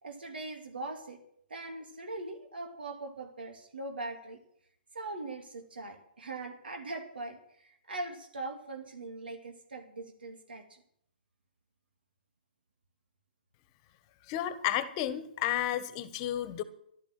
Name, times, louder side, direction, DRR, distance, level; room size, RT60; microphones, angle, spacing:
voice 1, 0.0-1.2 1.5-4.4 4.9-10.8, right 2 dB, 80° right, 4 dB, 2.5 m, -41 dB
voice 2, 14.3-16.6, left 12 dB, 35° left, 14 dB, 1.4 m, -32 dB
12.5 x 12.0 x 6.2 m, 0.70 s
hypercardioid pair, 135°, 5 cm